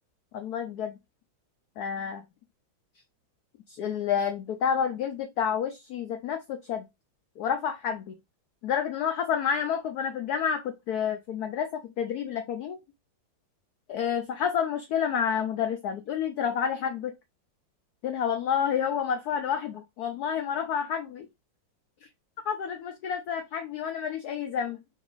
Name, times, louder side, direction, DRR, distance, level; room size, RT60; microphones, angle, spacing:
voice 1, 0.3-0.9 1.8-2.2 3.7-6.8 7.4-8.1 8.6-12.8 13.9-17.1 18.0-21.3 22.5-24.8, left 7 dB, 75° left, 0.8 m, -29 dB
4.0 x 2.7 x 3.8 m
omnidirectional pair, 2.1 m